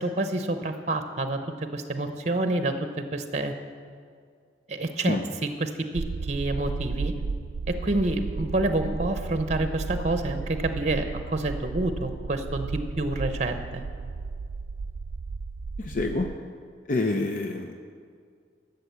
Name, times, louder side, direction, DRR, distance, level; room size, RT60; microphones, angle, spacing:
voice 1, 0.0-3.5 4.7-7.1 7.7-13.8, right 2 dB, 40° right, 7 dB, 0.8 m, -28 dB
sound 1, 5.9-16.4, right 4 dB, 60° right, 0.3 m, -34 dB
voice 2, 15.8-16.3 16.9-17.7, left 2 dB, 45° left, 5 dB, 0.6 m, -27 dB
13.0 x 6.8 x 8.1 m, 2.2 s
head